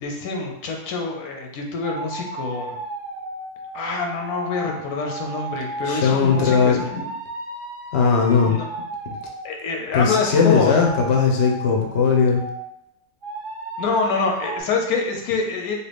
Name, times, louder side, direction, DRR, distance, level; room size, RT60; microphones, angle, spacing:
voice 1, 0.0-2.7 3.7-6.8 8.5-8.7 9.4-10.7 13.8-15.7, left 4 dB, 85° left, 1 dB, 1.1 m, -26 dB
sound 1, 1.8-9.5 10.1-12.7 13.2-14.6, right 2 dB, 50° right, 0.7 m, -34 dB
voice 2, 5.8-7.0 7.9-8.5 9.9-12.4, left 5 dB, 60° left, 1 dB, 0.7 m, -18 dB
3.0 x 2.4 x 3.3 m, 0.78 s
omnidirectional pair, 1.5 m